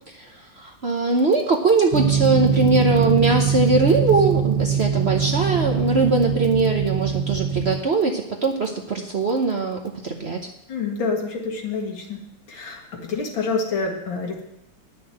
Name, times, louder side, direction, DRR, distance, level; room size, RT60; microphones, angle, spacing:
voice 1, 0.6-10.5, right 3 dB, 45° right, 1 dB, 0.9 m, -21 dB
sound 1, 1.9-7.8, right 8 dB, 80° right, 1.5 m, -22 dB
voice 2, 10.7-12.2 12.5-14.4, left 4 dB, 85° left, 1 dB, 2.6 m, -27 dB
10.5 x 6.5 x 7.6 m, 0.81 s
omnidirectional pair, 2.1 m